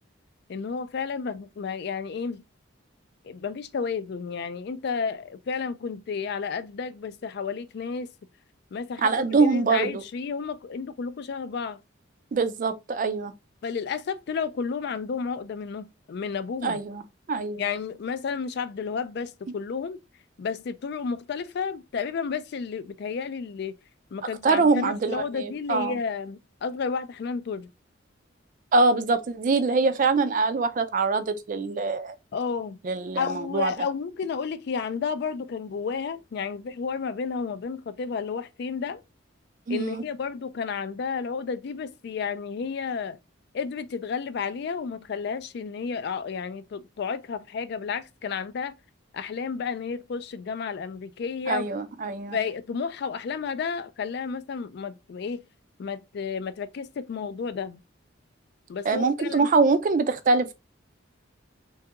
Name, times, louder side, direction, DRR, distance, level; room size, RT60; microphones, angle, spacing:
voice 1, 0.5-2.4 3.2-8.1 8.7-11.8 13.6-16.8 17.6-20.0 20.4-23.8 24.1-27.7 32.3-32.8 33.2-39.0 39.7-43.2 43.5-48.7 49.1-51.7 52.3-55.4 55.8-57.8 58.7-59.5, left 5 dB, 55° left, 0.3 m, -32 dB
voice 2, 9.0-10.0 12.3-13.3 16.6-17.0 17.3-17.6 24.4-26.0 28.7-32.2 32.8-33.7 39.7-40.0 51.5-52.4 58.8-60.5, right 4 dB, 40° right, 0.4 m, -24 dB
3.4 x 2.3 x 2.9 m
head